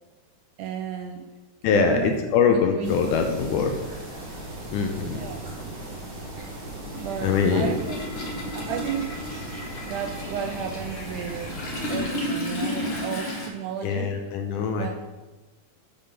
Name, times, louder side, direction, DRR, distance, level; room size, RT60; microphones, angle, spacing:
voice 1, 0.6-1.3 1.7-2.2 2.5-2.9 3.3-3.5 5.1-5.5 7.0-8.0 8.5-9.2 9.8-11.6 11.9-14.2 14.8-14.9, right 8 dB, 80° right, 5 dB, 1.8 m, -33 dB
voice 2, 1.6-3.7 4.7-5.2 7.2-7.7 13.8-14.9, left 6 dB, 75° left, 4 dB, 2.0 m, -23 dB
sound 1, 2.8-12.0, right 1 dB, 55° right, 4.1 m, -37 dB
Toilet flush, 4.4-4.5 4.8-13.5, left 1 dB, 50° left, 1.7 m, -33 dB
10.0 x 3.7 x 5.7 m, 1.2 s
omnidirectional pair, 4.0 m